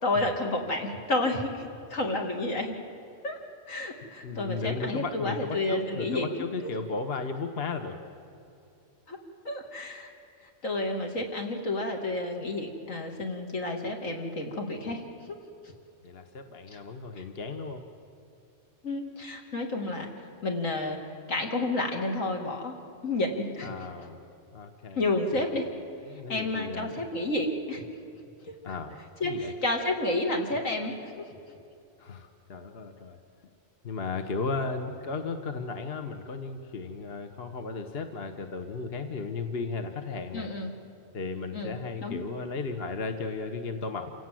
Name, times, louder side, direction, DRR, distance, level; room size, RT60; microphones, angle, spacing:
voice 1, 0.0-1.6 1.9-2.7 3.2-3.4 3.7-6.3 9.1-9.2 9.4-10.1 10.6-15.0 15.3-15.4 18.8-20.1 20.4-21.0 21.3-22.7 23.0-23.8 25.0-25.7 26.3-27.9 29.2-30.9 40.3-40.7 41.5-42.2, left 2 dB, 75° left, 2 dB, 2.8 m, -30 dB
voice 2, 4.2-8.0 16.0-17.8 23.6-24.2 24.5-25.1 26.1-26.9 28.6-29.0 29.2-29.5 32.0-33.2 33.8-40.5 41.1-44.1, left 4 dB, 50° left, 6 dB, 1.3 m, -35 dB
28.0 x 17.0 x 7.6 m, 2.6 s
omnidirectional pair, 1.4 m